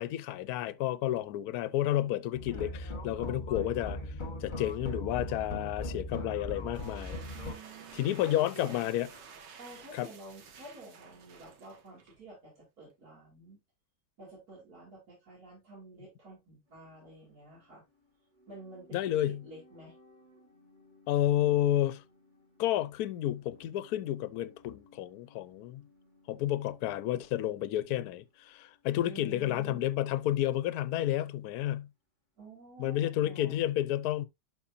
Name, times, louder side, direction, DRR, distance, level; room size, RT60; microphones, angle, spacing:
voice 1, 0.0-4.1 4.4-7.2 7.9-9.1 9.9-10.1 18.9-19.4 21.1-22.0 22.6-25.8 26.3-31.9 32.8-34.2, left 13 dB, 70° left, 1.1 m, -31 dB
sound 1, 2.3-7.5, left 1 dB, 30° left, 1.3 m, -39 dB
sound 2, 6.5-12.3, right 6 dB, 85° right, 1.9 m, -52 dB
voice 2, 7.3-8.9 9.6-13.6 14.2-17.8 18.5-20.0 29.0-29.8 32.4-33.6, right 2 dB, 55° right, 4.0 m, -50 dB
sound 3, 16.7-30.7 31.0-31.1, left 2 dB, 25° right, 2.6 m, -63 dB
11.5 x 4.0 x 2.7 m
omnidirectional pair, 1.9 m